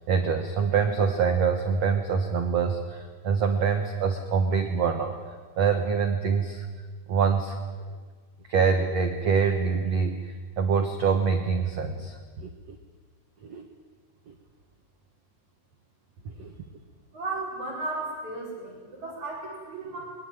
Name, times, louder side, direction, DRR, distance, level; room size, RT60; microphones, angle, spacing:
voice 1, 0.1-5.1 5.6-6.7 7.1-7.6 8.5-12.8 13.4-13.6 14.3-14.4 16.4-16.5, right 6 dB, 75° right, 5 dB, 1.5 m, -25 dB
voice 2, 17.1-20.0, right 2 dB, 40° right, -3 dB, 5.8 m, -34 dB
22.0 x 21.5 x 9.3 m, 1.4 s
omnidirectional pair, 5.3 m